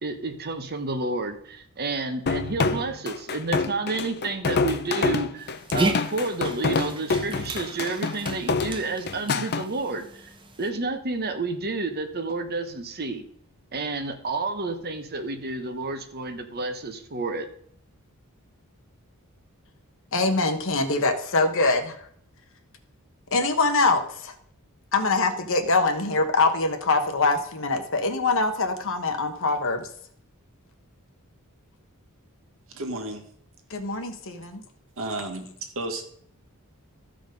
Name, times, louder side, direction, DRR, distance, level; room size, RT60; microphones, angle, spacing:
voice 1, 0.0-10.3 10.6-13.3 13.7-17.5, right 3 dB, 45° right, 7 dB, 1.1 m, -30 dB
sound 1, 2.3-9.6, left 4 dB, 45° left, 0.6 m, -27 dB
Dog, 5.4-10.7, right 2 dB, 20° right, 1.0 m, -34 dB
voice 2, 20.1-22.1 23.3-24.3 24.9-29.9 33.7-34.6, left 3 dB, 65° left, 6 dB, 1.3 m, -24 dB
voice 3, 32.7-33.3 35.0-36.0, right 2 dB, 65° right, 4 dB, 1.6 m, -32 dB
14.0 x 5.1 x 5.3 m, 0.62 s
head